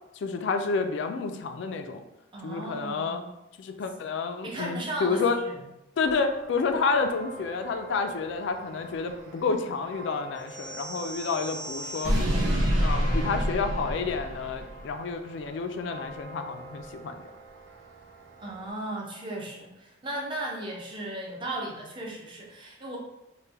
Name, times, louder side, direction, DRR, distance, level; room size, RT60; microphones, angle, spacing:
voice 1, 0.2-2.0 2.4-3.2 3.6-5.4 6.0-12.1 12.8-17.1, left 4 dB, 70° left, 7 dB, 0.3 m, -29 dB
voice 2, 2.3-3.3 4.4-5.6 18.4-23.0, right 1 dB, 25° right, -2 dB, 0.5 m, -36 dB
sound 1, 6.0-18.7, right 2 dB, 85° right, 0.5 m, -45 dB
sound 2, 10.5-14.8, equal, 65° right, 0.9 m, -28 dB
3.2 x 2.1 x 3.3 m, 0.90 s
head